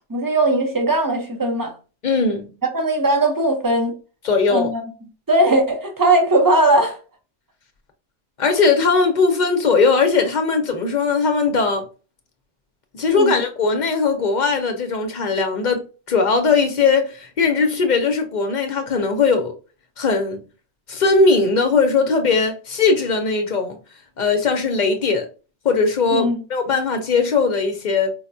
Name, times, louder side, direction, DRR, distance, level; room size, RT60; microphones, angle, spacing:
voice 1, 0.1-1.7 2.7-3.9 4.5-4.8 5.3-7.0 13.1-13.4 26.1-26.4, right 2 dB, 25° right, 0.6 m, -18 dB
voice 2, 2.0-2.5 4.2-4.7 8.4-11.8 12.9-19.5 20.0-20.4 20.9-23.8 24.2-25.3 25.6-28.1, left 4 dB, 55° left, 0.6 m, -19 dB
4.6 x 2.2 x 2.5 m
omnidirectional pair, 1.1 m